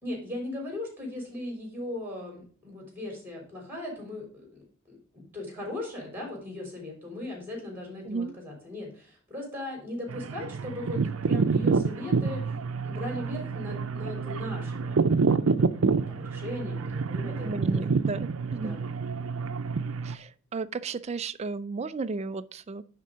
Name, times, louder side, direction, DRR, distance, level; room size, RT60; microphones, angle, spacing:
voice 1, 0.0-4.5 4.9-12.4 12.8-15.0 15.4-17.8 18.5-18.9, left 1 dB, 10° right, 3.7 m, -38 dB
sound 1, 10.1-20.2, right 4 dB, 90° right, 0.6 m, -28 dB
voice 2, 17.2-18.8 20.0-22.8, right 4 dB, 30° right, 0.4 m, -34 dB
10.0 x 3.7 x 5.0 m
head